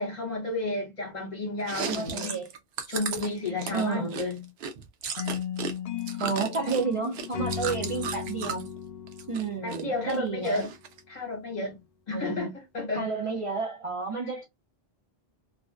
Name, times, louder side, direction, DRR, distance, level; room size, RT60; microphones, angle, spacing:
voice 1, 0.0-2.4 2.9-4.5 9.6-10.7 11.1-11.8 12.1-13.1, left 2 dB, 45° left, 1.2 m, -32 dB
Chewing mastication, 1.6-5.7 6.0-8.7 9.1-9.8 10.1-11.0, right 6 dB, 80° right, 0.8 m, -35 dB
voice 2, 1.8-2.5 3.7-4.2 6.2-8.7 9.3-10.6 12.1-12.5 12.9-14.4, right 4 dB, 40° right, 0.5 m, -31 dB
sound 1, 5.2-10.3, left 8 dB, 80° left, 0.8 m, -36 dB
2.4 x 2.1 x 2.3 m
omnidirectional pair, 1.0 m